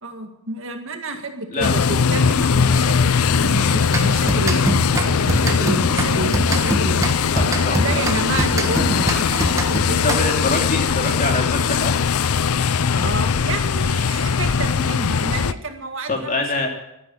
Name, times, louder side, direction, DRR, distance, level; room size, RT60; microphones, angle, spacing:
voice 1, 0.0-7.1 7.6-10.2 12.9-16.7, right 2 dB, 60° right, 5 dB, 2.0 m, -29 dB
sound 1, 1.6-15.5, left 6 dB, 80° left, 0.6 m, -20 dB
sound 2, 3.9-10.5, right 1 dB, 15° right, 1.4 m, -25 dB
voice 2, 7.3-8.0 10.0-11.9 16.1-16.7, left 2 dB, 35° left, 2 dB, 2.9 m, -24 dB
12.0 x 11.0 x 9.9 m, 0.85 s
head